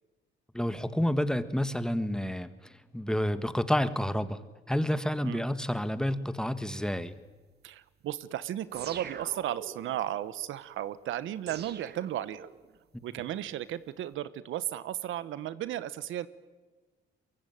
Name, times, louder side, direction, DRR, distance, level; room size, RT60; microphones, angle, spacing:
voice 1, 0.5-2.5 2.9-4.4 4.7-7.1, equal, 5° left, 12 dB, 1.6 m, -29 dB
voice 2, 7.6-12.5 13.0-16.3, right 12 dB, 80° right, 16 dB, 1.1 m, -35 dB
sound 1, 8.7-10.0 11.5-12.8, right 7 dB, 55° right, 1.8 m, -43 dB
24.0 x 22.5 x 9.2 m, 1.3 s
cardioid pair, 90°, 20 cm